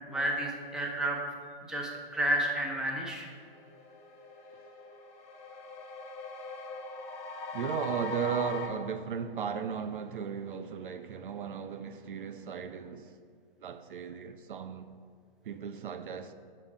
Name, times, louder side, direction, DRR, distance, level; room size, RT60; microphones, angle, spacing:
voice 1, 0.1-1.2 1.7-3.3, right 1 dB, ahead, 0.6 m, -31 dB
sound 1, 3.3-8.7, left 3 dB, 20° left, 1.0 m, -41 dB
voice 2, 7.5-13.2 13.6-14.9 15.4-16.3, right 7 dB, 65° right, 0.5 m, -36 dB
6.1 x 4.5 x 4.9 m
figure-of-eight pair, 120°, 29 cm